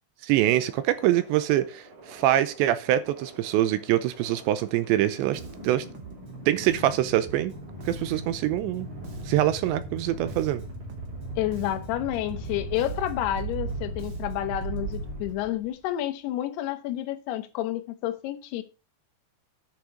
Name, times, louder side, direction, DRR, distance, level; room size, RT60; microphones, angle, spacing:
voice 1, 0.2-5.9 6.5-7.5 7.9-8.9 9.3-10.6, right 13 dB, 80° right, 2.8 m, -24 dB
sound 1, 0.7-15.8, right 1 dB, 45° right, 5.1 m, -39 dB
Bass guitar, 5.3-15.2, right 5 dB, 65° right, 1.2 m, -45 dB
voice 2, 11.4-18.6, left 13 dB, 70° left, 2.8 m, -30 dB
10.0 x 6.8 x 4.7 m
omnidirectional pair, 5.5 m